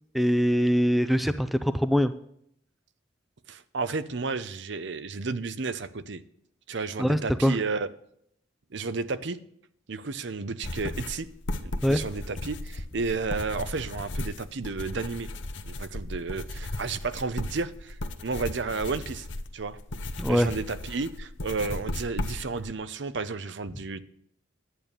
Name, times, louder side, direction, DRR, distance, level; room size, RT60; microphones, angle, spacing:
voice 1, 0.1-2.1 7.0-7.6 11.8-12.0 20.2-20.5, equal, ahead, 11 dB, 0.4 m, -23 dB
voice 2, 3.5-6.2 6.7-7.9 8.7-9.4 9.9-11.3 11.6-15.3 15.7-18.0 18.2-19.3 19.5-19.8 20.3-24.0, right 4 dB, 60° right, 13 dB, 0.7 m, -32 dB
sound 1, 10.6-22.7, left 2 dB, 65° left, 0.9 m, -36 dB
11.5 x 8.9 x 6.7 m, 0.70 s
head